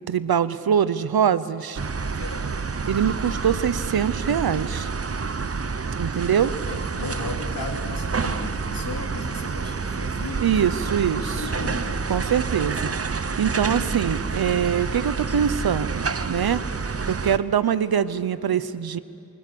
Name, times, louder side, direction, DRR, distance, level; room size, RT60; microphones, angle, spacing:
voice 1, 0.1-1.8 2.9-4.9 6.0-6.5 10.4-11.4 12.1-12.9 13.4-16.6 17.1-19.0, right 8 dB, 85° right, 16 dB, 0.7 m, -23 dB
sound 1, 1.8-17.4, right 4 dB, 40° right, 0.8 m, -28 dB
voice 2, 2.2-2.6 6.6-10.8 11.0-12.0, left 2 dB, 70° left, 1 dB, 3.1 m, -35 dB
25.0 x 20.0 x 6.9 m, 2.7 s
cardioid pair, 45°, 36 cm